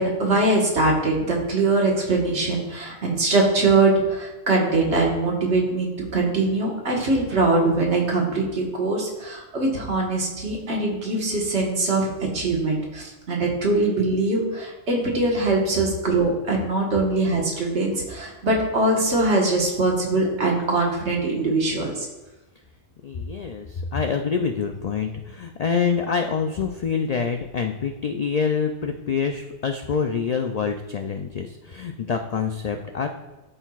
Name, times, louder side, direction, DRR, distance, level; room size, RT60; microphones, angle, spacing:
voice 1, 0.0-22.1, right 2 dB, 70° right, -1 dB, 1.6 m, -22 dB
voice 2, 23.0-33.1, left 6 dB, 80° left, 5 dB, 0.3 m, -26 dB
12.0 x 4.5 x 2.4 m, 1.1 s
omnidirectional pair, 1.2 m